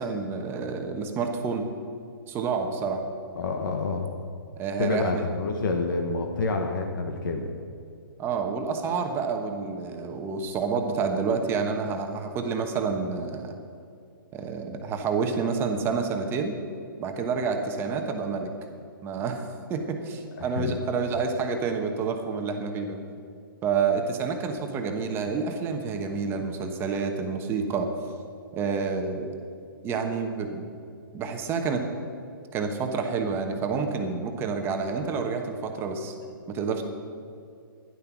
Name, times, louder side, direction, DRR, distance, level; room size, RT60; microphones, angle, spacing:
voice 1, 0.0-1.7 2.3-3.0 4.6-5.2 8.2-13.5 14.3-16.6 17.0-18.5 19.0-23.0 23.6-27.9 28.5-29.3 29.8-30.6 31.1-31.9 32.5-36.1 36.5-36.8, right 5 dB, 20° right, 4 dB, 1.1 m, -28 dB
voice 2, 3.3-4.1 4.8-7.5 20.4-20.8, left 3 dB, 60° left, 3 dB, 1.4 m, -28 dB
12.0 x 11.0 x 6.1 m, 2.5 s
hypercardioid pair, 145°, 12 cm